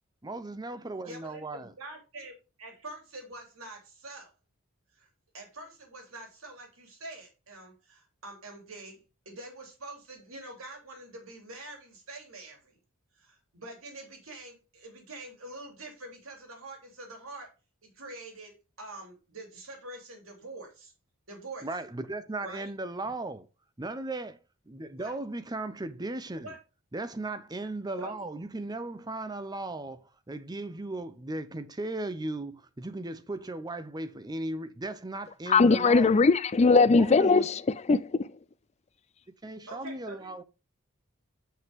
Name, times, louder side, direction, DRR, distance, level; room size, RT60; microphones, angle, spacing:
voice 1, 0.2-1.7 21.6-23.5 23.8-24.4 24.7-26.5 26.9-36.2 36.9-37.5 39.4-40.4, right 2 dB, 20° right, 0.6 m, -37 dB
voice 2, 1.0-4.3 4.9-5.1 5.3-9.0 9.2-12.8 13.1-17.5 17.8-20.9 21.3-21.7 22.4-22.7 25.0-25.1 26.4-26.6 28.0-28.3 39.7-40.3, right 2 dB, 75° right, 3.2 m, -45 dB
voice 3, 35.5-37.6 37.9-38.3, left 4 dB, 30° left, 0.4 m, -20 dB
7.9 x 5.6 x 3.6 m
head